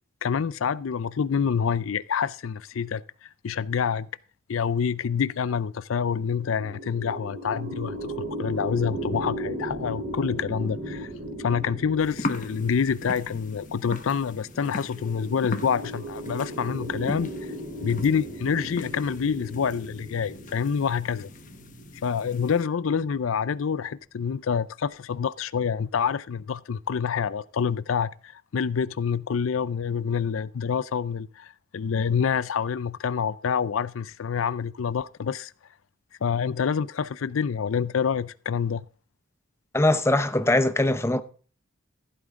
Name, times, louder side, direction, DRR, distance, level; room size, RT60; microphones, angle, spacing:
voice 1, 0.2-4.1 4.5-11.1 11.4-17.3 17.8-21.3 22.0-35.5 36.2-38.8, left 6 dB, 85° left, 0.5 m, -27 dB
sound 1, 6.1-23.5, right 1 dB, 45° right, 3.9 m, -37 dB
sound 2, 12.0-22.6, left 2 dB, 40° left, 1.4 m, -39 dB
voice 2, 39.7-41.2, left 1 dB, 15° left, 0.8 m, -21 dB
15.0 x 8.7 x 3.6 m
head